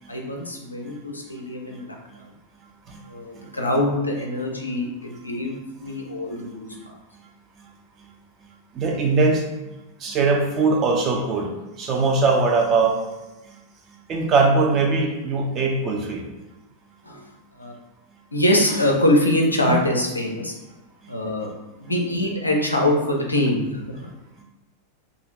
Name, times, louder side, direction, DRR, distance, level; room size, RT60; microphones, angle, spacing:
voice 1, 0.1-1.9 3.1-6.9 17.0-17.2 17.6-17.7 18.3-20.5 21.1-21.5 21.8-24.1, left 1 dB, 85° left, 0 dB, 0.5 m, -23 dB
voice 2, 8.7-9.4 10.0-11.5 11.8-13.0 14.1-16.2, right 3 dB, 30° right, 0 dB, 0.5 m, -20 dB
2.4 x 2.4 x 3.1 m, 1.0 s
figure-of-eight pair, 90°, 0 cm